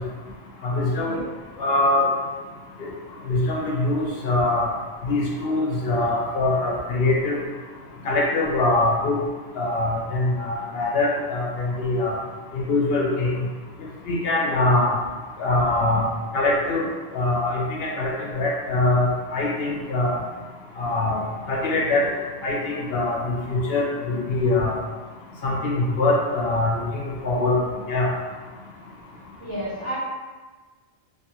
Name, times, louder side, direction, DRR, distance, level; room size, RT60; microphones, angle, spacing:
voice 1, 0.6-1.2 1.6-2.1 2.8-2.9 3.3-4.7 5.0-7.4 8.0-9.2 9.6-12.1 12.5-13.3 14.1-14.9 15.4-16.0 16.3-16.8 17.1-20.1 20.8-21.2 21.5-22.1 22.4-24.8 25.4-27.6 27.9-28.1, left 2 dB, 65° left, -2 dB, 0.7 m, -23 dB
voice 2, 29.4-30.0, right 1 dB, 35° right, -10 dB, 0.5 m, -32 dB
2.7 x 2.3 x 2.8 m, 1.4 s
omnidirectional pair, 1.1 m